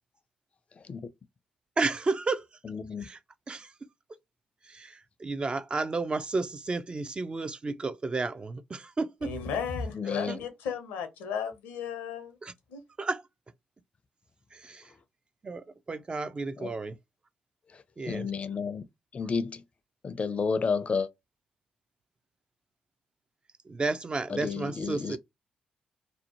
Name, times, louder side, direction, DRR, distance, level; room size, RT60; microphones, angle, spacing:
voice 1, 1.8-2.6 3.0-3.2 3.5-3.7 4.6-9.4 10.3-10.4 12.4-12.5 13.0-13.2 14.5-14.9 15.4-17.0 18.0-18.3 23.6-25.2, right 3 dB, 35° right, 0.4 m, -32 dB
voice 2, 2.7-3.1 9.9-10.4 16.6-16.7 18.1-18.8 19.1-19.6 20.0-21.1 24.3-25.2, left 5 dB, 45° left, 0.5 m, -31 dB
voice 3, 9.2-12.4 12.7-12.8, left 6 dB, 80° left, 0.7 m, -34 dB
2.7 x 2.0 x 2.8 m
hypercardioid pair, 45°, 3 cm